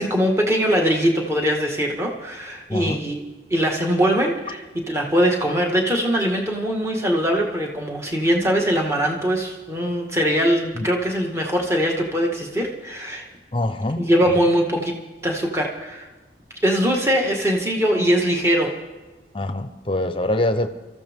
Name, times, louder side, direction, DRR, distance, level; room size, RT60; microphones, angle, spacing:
voice 1, 0.0-3.2 3.5-4.6 4.9-13.2 14.0-14.9 15.2-16.1 16.6-18.7, equal, 15° right, 0 dB, 1.8 m, -21 dB
voice 2, 13.5-14.0 19.3-20.7, left 1 dB, 30° left, 9 dB, 0.8 m, -24 dB
25.5 x 14.5 x 3.7 m, 1.2 s
head